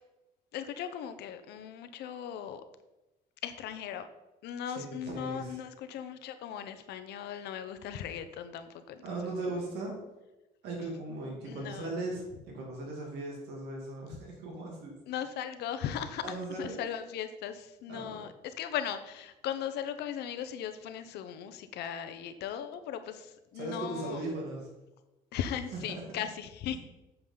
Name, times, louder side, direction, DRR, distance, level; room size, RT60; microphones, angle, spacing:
voice 1, 0.5-2.6 3.4-4.1 4.4-9.1 11.4-12.0 15.1-24.2 25.3-26.8, left 9 dB, 75° left, 10 dB, 0.8 m, -38 dB
voice 2, 4.7-5.6 9.0-10.0 10.6-14.9 16.2-16.8 17.9-18.3 23.5-24.7 25.7-26.0, right 2 dB, 80° right, -1 dB, 2.5 m, -38 dB
8.8 x 6.9 x 3.9 m, 1.0 s
cardioid pair, 110°, 17 cm